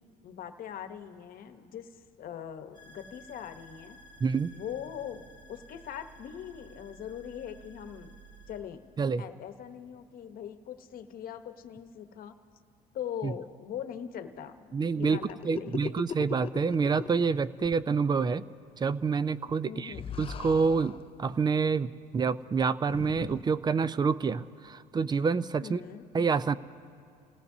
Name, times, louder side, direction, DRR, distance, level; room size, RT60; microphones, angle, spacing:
voice 1, 0.2-1.9 2.2-4.0 4.5-5.2 5.5-8.1 8.5-8.8 9.2-12.3 12.9-16.0 19.6-20.0 25.6-26.1, left 9 dB, 60° left, 8 dB, 1.0 m, -41 dB
sound 1, 2.7-8.6, right 1 dB, 50° right, 2.5 m, -53 dB
voice 2, 4.2-4.5 9.0-9.3 13.2-13.3 14.7-18.4 18.8-25.8 26.1-26.5, right 5 dB, 25° right, 16 dB, 0.4 m, -28 dB
sound 2, 15.0-17.3 17.6-17.8 19.9-21.1 22.9-23.4, left 7 dB, 35° left, 0.5 m, -39 dB
29.5 x 17.5 x 2.7 m, 2.5 s
cardioid pair, 110°, 17 cm